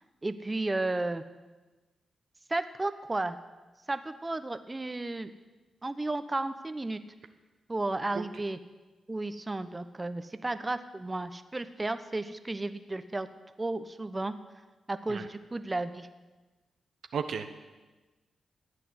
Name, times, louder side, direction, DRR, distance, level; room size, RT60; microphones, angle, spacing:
voice 1, 0.2-1.2 2.5-3.4 3.9-5.3 5.8-7.0 7.7-8.6 9.1-13.3 13.6-14.3 14.9-16.1, right 2 dB, 25° right, 11 dB, 1.0 m, -33 dB
voice 2, 17.1-17.6, right 6 dB, 70° right, 7 dB, 1.0 m, -34 dB
14.5 x 9.1 x 7.9 m, 1.2 s
hypercardioid pair, 40°, 0 cm